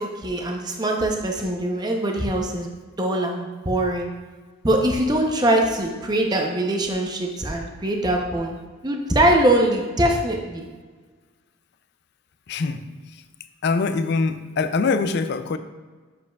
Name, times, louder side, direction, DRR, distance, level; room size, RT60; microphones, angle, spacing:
voice 1, 0.0-2.7 3.0-4.1 4.6-8.6 8.8-10.7, right 1 dB, 20° right, 1 dB, 0.6 m, -22 dB
voice 2, 12.5-12.8 13.6-15.6, left 4 dB, 50° left, 9 dB, 0.4 m, -23 dB
7.6 x 6.8 x 2.3 m, 1.4 s
head